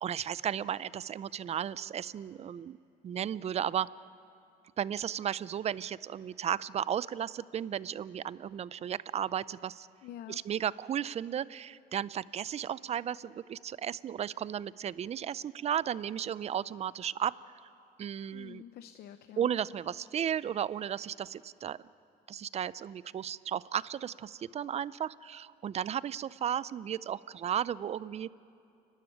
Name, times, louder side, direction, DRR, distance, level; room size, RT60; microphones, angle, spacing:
voice 1, 0.0-2.8 3.0-3.9 4.8-9.9 10.3-17.3 18.0-18.6 19.4-21.8 22.3-28.3, right 9 dB, 40° right, 19 dB, 0.5 m, -34 dB
voice 2, 10.0-10.4 18.3-19.5, left 11 dB, 65° left, 10 dB, 0.7 m, -47 dB
30.0 x 12.5 x 9.2 m, 2.6 s
cardioid pair, 110°, 17 cm